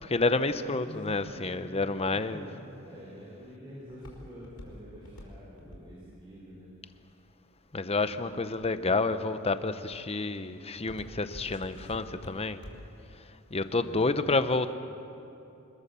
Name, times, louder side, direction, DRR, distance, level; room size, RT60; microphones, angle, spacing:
voice 1, 0.0-2.5 7.7-12.6 13.5-14.7, left 3 dB, 30° left, 11 dB, 0.8 m, -29 dB
voice 2, 0.5-2.0 2.3-6.7 7.9-8.5 13.5-14.2, equal, 25° right, -7 dB, 4.9 m, -47 dB
Walk footsteps, 2.9-7.9 8.5-8.9 9.5-9.8 10.2-13.0 13.4-13.5, left 1 dB, 80° left, 4.5 m, -47 dB
26.0 x 21.5 x 6.9 m, 2.8 s
head